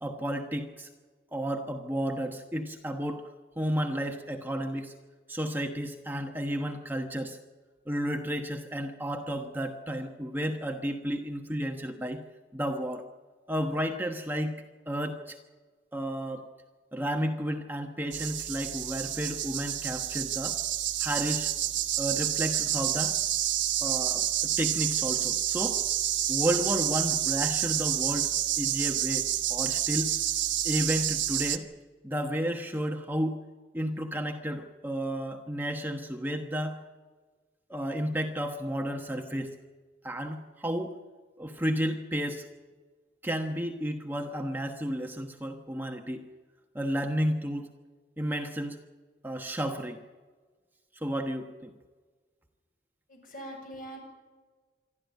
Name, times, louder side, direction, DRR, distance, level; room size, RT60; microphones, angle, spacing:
voice 1, 0.0-0.9 1.3-3.3 3.6-4.9 5.3-7.4 7.9-12.2 12.5-13.1 13.5-15.4 15.9-16.5 16.9-20.6 21.0-21.5 22.0-23.2 23.8-25.8 26.3-28.3 28.6-30.1 30.6-31.7 32.0-33.4 33.7-36.8 37.7-39.5 40.0-40.9 41.4-42.5 43.2-46.2 46.7-47.7 48.2-48.8 49.2-50.0 51.0-51.7, equal, 10° right, 3 dB, 1.2 m, -32 dB
sound 1, 18.1-31.6, right 12 dB, 85° right, 1.3 m, -29 dB
voice 2, 53.1-54.0, right 1 dB, 50° left, 2 dB, 7.1 m, -42 dB
26.5 x 12.5 x 9.3 m, 1.4 s
head